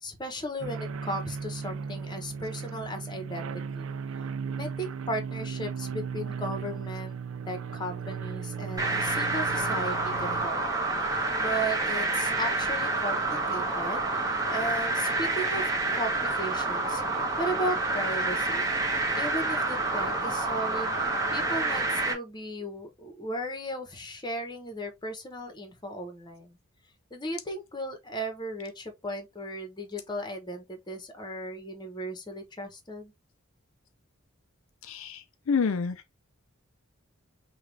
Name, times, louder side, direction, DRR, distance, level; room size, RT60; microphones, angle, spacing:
voice 1, 0.0-3.5 3.7-3.9 4.6-7.2 7.5-10.6 11.4-14.0 14.5-15.7 15.9-17.0 17.4-18.7 19.2-20.9 21.3-26.6 27.1-33.1, equal, 20° left, 1.1 m, -36 dB
sound 1, 0.6-10.5, right 6 dB, 65° right, 0.5 m, -36 dB
sound 2, 8.8-22.1, right 2 dB, 15° right, 1.2 m, -28 dB
voice 2, 34.8-36.0, left 5 dB, 70° left, 0.5 m, -28 dB
5.7 x 2.4 x 3.3 m
head